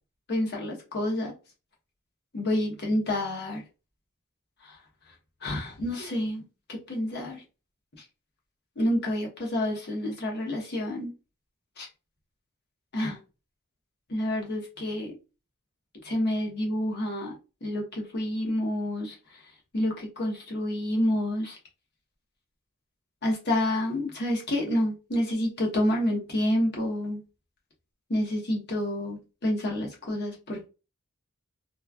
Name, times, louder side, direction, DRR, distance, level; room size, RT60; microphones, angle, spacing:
voice 1, 0.3-1.3 2.3-3.6 4.6-4.8 5.4-6.4 6.7-7.4 8.8-11.1 11.8-11.9 12.9-13.2 14.1-15.1 16.0-17.3 17.6-19.2 19.7-21.6 23.2-27.2 28.1-30.7, left 1 dB, 50° left, 1.0 m, -28 dB
3.1 x 2.3 x 2.2 m
head